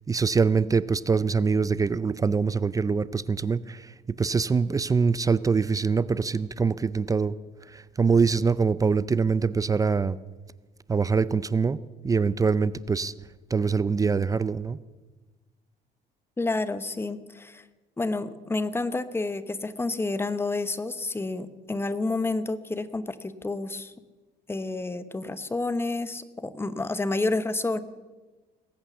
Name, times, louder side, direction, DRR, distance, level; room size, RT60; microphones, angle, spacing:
voice 1, 0.1-7.4 7.7-10.2 10.9-11.8 12.0-13.1 13.5-14.8, right 5 dB, 20° right, 18 dB, 0.4 m, -24 dB
voice 2, 16.4-17.6 18.0-23.9 24.5-27.8, left 2 dB, 15° left, 13 dB, 0.9 m, -29 dB
20.0 x 8.7 x 7.1 m, 1.2 s
cardioid pair, 110°, 17 cm